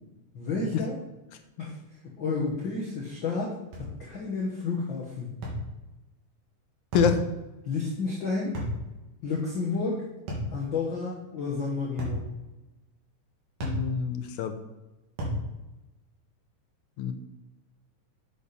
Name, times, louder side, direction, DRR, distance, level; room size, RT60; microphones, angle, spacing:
voice 1, 0.3-0.9 1.6-1.7 2.2-5.3 7.6-8.5 9.2-10.0 10.5-12.2, left 4 dB, 50° left, -4 dB, 1.7 m, -31 dB
sound 1, 3.7-4.0 5.4-5.7 6.9-7.2 8.6-8.8 10.3-10.5 12.0-12.2 13.6-13.9 15.2-15.4, equal, 85° right, 3.8 m, -31 dB
voice 2, 13.6-14.6 17.0-17.1, left 6 dB, 80° left, 7 dB, 2.1 m, -26 dB
8.3 x 7.3 x 4.2 m, 1.0 s
omnidirectional pair, 3.5 m